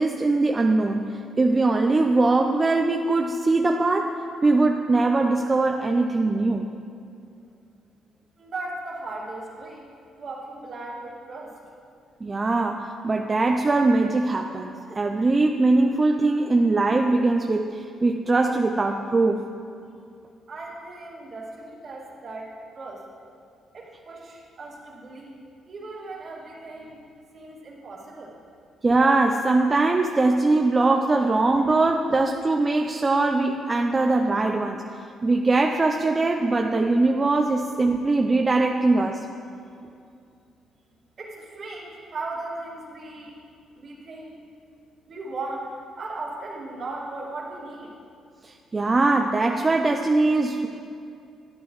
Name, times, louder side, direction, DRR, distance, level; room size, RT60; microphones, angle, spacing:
voice 1, 0.0-4.1 4.4-6.7 12.2-19.4 28.8-34.8 35.2-39.2 48.4-50.7, right 3 dB, 30° right, 3 dB, 0.5 m, -21 dB
voice 2, 8.4-9.8 10.1-11.6 20.5-23.0 23.7-25.4 25.7-27.1 27.3-28.4 41.2-43.4 43.7-44.4 45.1-47.9, right 2 dB, 55° right, -4 dB, 2.2 m, -37 dB
12.5 x 9.2 x 3.1 m, 2.5 s
cardioid pair, 90°, 0 cm